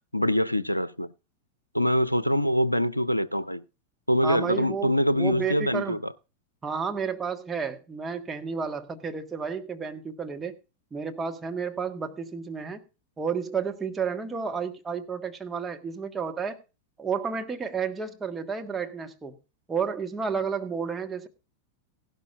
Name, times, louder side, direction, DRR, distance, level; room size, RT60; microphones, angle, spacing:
voice 1, 0.1-1.1 1.7-3.6 4.1-6.1, equal, 90° left, 0.6 m, -24 dB
voice 2, 4.2-6.0 6.6-10.5 10.9-12.8 13.2-16.6 17.0-19.4 19.7-21.3, right 6 dB, 15° right, 1.7 m, -31 dB
16.5 x 12.0 x 2.5 m
figure-of-eight pair, 90°, 0 cm